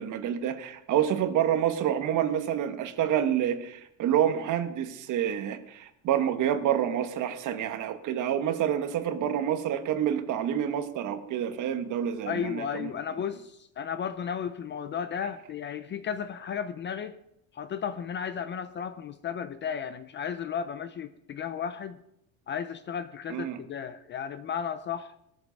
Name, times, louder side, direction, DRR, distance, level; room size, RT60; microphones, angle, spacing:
voice 1, 0.0-12.9 23.3-23.6, right 10 dB, 45° right, 8 dB, 1.5 m, -28 dB
voice 2, 12.2-17.2 17.5-22.0 22.5-25.1, left 7 dB, 30° left, 12 dB, 0.5 m, -34 dB
19.0 x 14.0 x 5.3 m, 0.80 s
cardioid pair, 180°, 41 cm